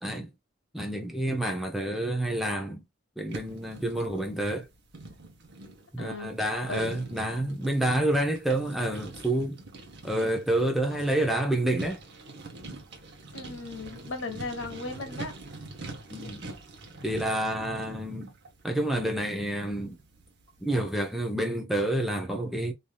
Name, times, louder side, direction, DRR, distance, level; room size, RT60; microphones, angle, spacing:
voice 1, 0.7-2.8 3.2-4.7 5.9-9.6 10.0-12.0 16.1-16.5 17.0-18.3 18.6-20.0 20.6-22.7, right 1 dB, ahead, 0.6 m, -28 dB
sound 1, 3.3-20.9, right 2 dB, 60° right, 0.9 m, -45 dB
voice 2, 6.0-6.3 6.7-7.0 13.3-15.3, left 3 dB, 75° left, 1.2 m, -36 dB
3.2 x 2.7 x 2.2 m
head